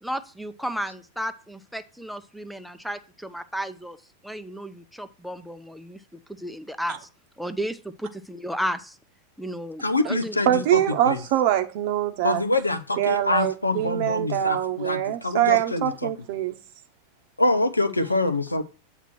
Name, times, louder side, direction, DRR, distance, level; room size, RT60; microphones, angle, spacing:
voice 1, 0.0-4.0 4.2-6.0 6.3-7.1 7.4-9.0 9.4-10.4, equal, ahead, 0.6 m, -33 dB
voice 2, 9.8-10.8 11.1-11.2 12.2-16.1 17.4-18.6, left 2 dB, 80° left, 0.6 m, -25 dB
voice 3, 10.5-12.4 13.0-16.5, right 12 dB, 50° right, 0.8 m, -24 dB
8.1 x 3.0 x 6.0 m
figure-of-eight pair, 90°, 0 cm